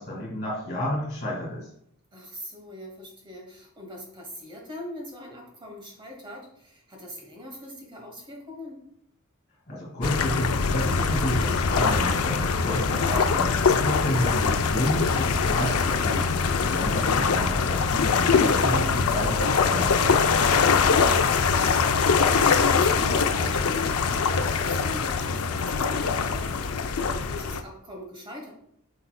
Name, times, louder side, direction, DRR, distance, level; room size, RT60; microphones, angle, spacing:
voice 1, 0.0-1.7 9.7-13.5 13.8-20.3, equal, 40° left, -5 dB, 2.5 m, -31 dB
voice 2, 2.1-8.8 16.6-17.0 20.8-28.5, left 1 dB, 25° right, 1 dB, 1.1 m, -41 dB
sound 1, 10.0-27.6, left 5 dB, 80° left, 0.5 m, -23 dB
8.0 x 5.5 x 2.2 m, 0.71 s
head